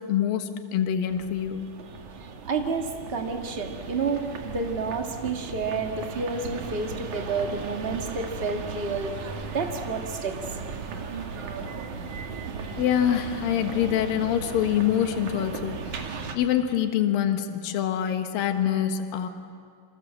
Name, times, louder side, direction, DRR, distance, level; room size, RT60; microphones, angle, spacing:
voice 1, 0.1-1.7 12.8-16.0 16.3-19.3, left 10 dB, 70° left, 6 dB, 3.1 m, -25 dB
sound 1, 1.1-16.4, right 5 dB, 55° right, 3.0 m, -37 dB
voice 2, 2.4-10.4, right 4 dB, 80° right, 3 dB, 0.5 m, -30 dB
28.0 x 27.0 x 7.6 m, 2.2 s
omnidirectional pair, 4.4 m